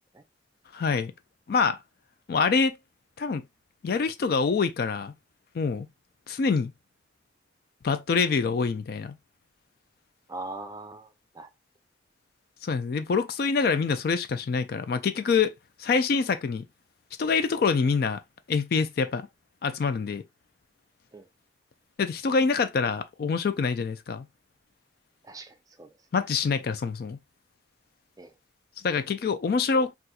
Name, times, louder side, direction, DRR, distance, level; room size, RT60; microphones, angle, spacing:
voice 1, 0.7-1.1 1.5-1.8 2.3-2.8 3.2-3.4 3.8-5.1 5.5-5.9 6.3-6.7 7.8-9.1 12.6-15.5 15.8-16.6 17.2-18.2 18.5-19.3 19.6-20.2 22.0-24.3 26.1-27.2 28.8-29.9, left 5 dB, 55° left, 0.3 m, -25 dB
voice 2, 10.3-11.5 21.1-21.3 25.2-25.9 28.2-28.3, right 2 dB, 20° right, 0.4 m, -41 dB
4.1 x 2.4 x 2.3 m
head